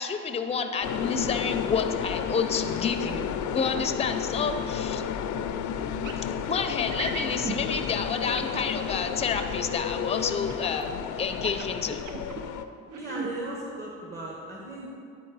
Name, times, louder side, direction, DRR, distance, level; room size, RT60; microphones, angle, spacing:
voice 1, 0.0-5.0 6.2-12.0, left 5 dB, 20° left, 7 dB, 0.5 m, -29 dB
sound 1, 0.8-12.6, left 8 dB, 85° left, 0.5 m, -32 dB
voice 2, 4.3-4.8 13.0-14.9, right 2 dB, 30° right, -3 dB, 1.1 m, -38 dB
sound 2, 6.0-6.2 6.9-7.6 8.4-9.0 10.5-10.8 11.3-12.4 12.9-13.3, right 5 dB, 80° right, 0.7 m, -36 dB
9.4 x 4.1 x 4.0 m, 2.5 s
cardioid pair, 90°, 30 cm